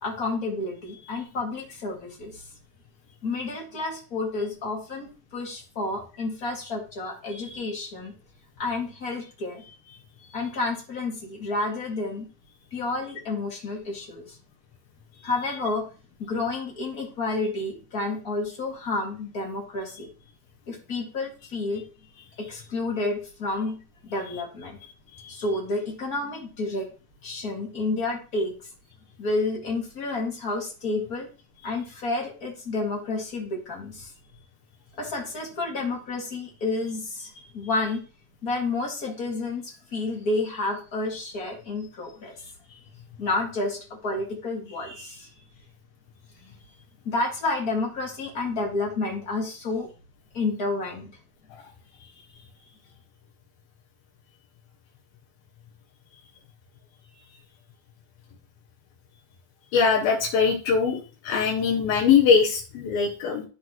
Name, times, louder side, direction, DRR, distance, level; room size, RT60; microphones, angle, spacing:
voice 1, 0.0-2.4 3.2-8.1 8.6-9.6 10.3-12.3 12.7-14.4 15.2-15.9 16.2-20.1 20.7-21.8 22.4-24.8 25.3-26.9 27.2-28.5 29.2-31.3 31.6-34.1 35.0-38.0 38.4-42.3 43.2-45.3 46.4-46.5 47.0-49.9 50.3-51.1, left 3 dB, 35° left, -1 dB, 1.8 m, -30 dB
voice 2, 59.7-61.0 61.2-63.4, left 6 dB, 90° left, -4 dB, 3.3 m, -21 dB
13.5 x 4.6 x 3.0 m, 0.35 s
omnidirectional pair, 4.1 m